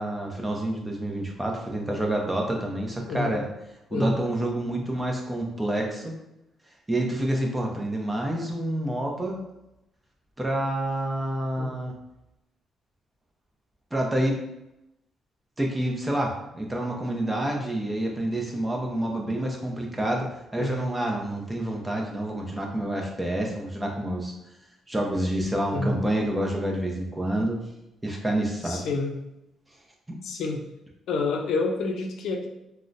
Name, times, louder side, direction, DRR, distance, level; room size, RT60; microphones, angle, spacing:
voice 1, 0.0-3.5 3.9-6.1 6.9-9.4 10.4-12.0 13.9-14.4 15.6-20.3 20.5-24.3 24.9-27.6 28.0-28.8 30.1-30.2, right 1 dB, 15° right, 0 dB, 0.7 m, -28 dB
voice 2, 28.7-29.1 30.2-30.6 31.1-32.5, left 3 dB, 75° left, 2 dB, 0.4 m, -28 dB
3.6 x 2.1 x 2.5 m, 0.88 s
cardioid pair, 90°, 0 cm